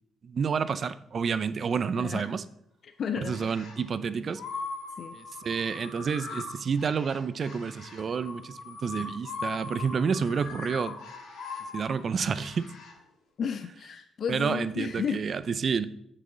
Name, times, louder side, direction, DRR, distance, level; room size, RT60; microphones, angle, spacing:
voice 1, 0.2-2.4 3.2-4.4 5.1-11.0 11.7-12.7 14.3-15.9, right 6 dB, 50° right, 0.5 m, -29 dB
voice 2, 2.0-2.3 2.8-3.5 5.0-5.2 13.4-15.2, left 7 dB, 55° left, 0.4 m, -33 dB
sound 1, 3.2-3.8 4.3-12.9, left 4 dB, 80° left, 1.8 m, -40 dB
7.6 x 6.6 x 3.9 m
cardioid pair, 90°, 0 cm